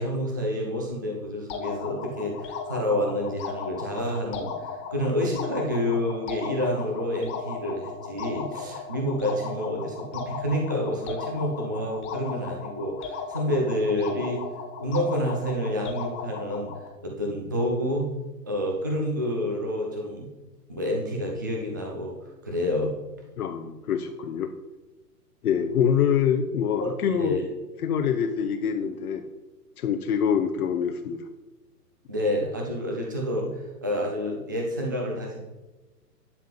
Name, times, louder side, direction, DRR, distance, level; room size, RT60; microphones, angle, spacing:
voice 1, 0.0-4.5 4.9-14.4 14.8-16.7 17.0-18.1 18.5-20.3 20.7-22.1 22.4-22.9 26.8-26.9 27.2-27.5 32.1-35.5, left 1 dB, 15° right, 0 dB, 0.3 m, -28 dB
sound 1, 1.5-16.9, left 5 dB, 25° left, 1.6 m, -36 dB
voice 2, 23.4-24.5 25.4-27.4 27.8-29.2 29.8-31.2, left 8 dB, 65° left, 5 dB, 0.9 m, -25 dB
11.0 x 3.7 x 7.4 m, 1.1 s
hypercardioid pair, 125°, 48 cm